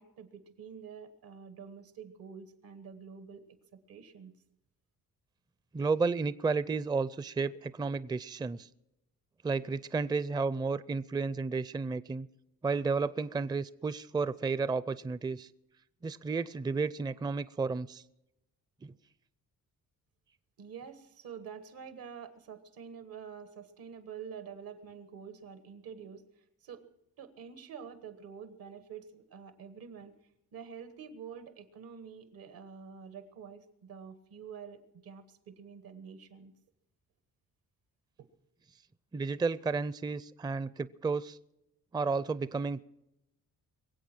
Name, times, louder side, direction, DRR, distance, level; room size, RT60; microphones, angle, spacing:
voice 1, 0.0-3.4 3.9-4.3 20.6-26.2 26.6-26.8 27.2-30.1 30.5-36.5, right 7 dB, 85° right, 10 dB, 1.6 m, -47 dB
voice 2, 5.7-8.7 9.4-12.3 12.6-15.5 16.0-18.0 18.8-18.9 39.1-41.4 41.9-42.8, right 4 dB, 10° right, 17 dB, 0.4 m, -32 dB
22.5 x 8.1 x 6.1 m, 0.87 s
cardioid pair, 80°, 35 cm